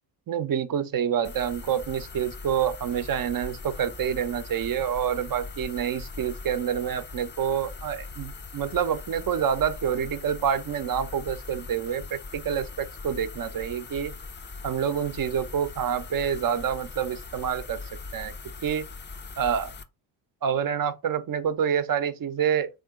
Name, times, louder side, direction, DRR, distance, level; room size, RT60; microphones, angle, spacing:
voice 1, 0.3-14.1 14.6-17.8 18.1-18.3 18.6-18.9 19.4-19.7 20.4-22.7, right 8 dB, 45° right, 0.8 m, -27 dB
sound 1, 1.2-19.8, left 3 dB, 25° left, 0.6 m, -41 dB
3.6 x 2.5 x 3.6 m
hypercardioid pair, 45°, 49 cm